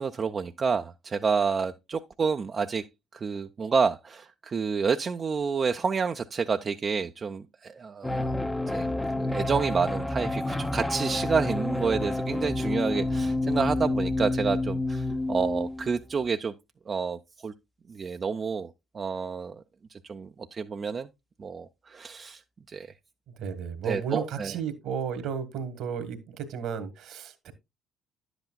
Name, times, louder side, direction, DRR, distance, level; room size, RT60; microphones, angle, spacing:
voice 1, 0.0-2.9 3.1-8.4 8.7-8.9 9.2-16.5 16.9-17.5 17.9-19.6 19.9-21.1 21.4-22.4 22.7-22.9 23.9-24.5, right 5 dB, 40° right, 0.5 m, -29 dB
sound 1, 8.0-16.0, left 2 dB, 10° left, 0.6 m, -29 dB
voice 2, 23.3-27.5, right 7 dB, 65° right, 1.4 m, -33 dB
10.5 x 8.0 x 2.3 m
hypercardioid pair, 55°, 0 cm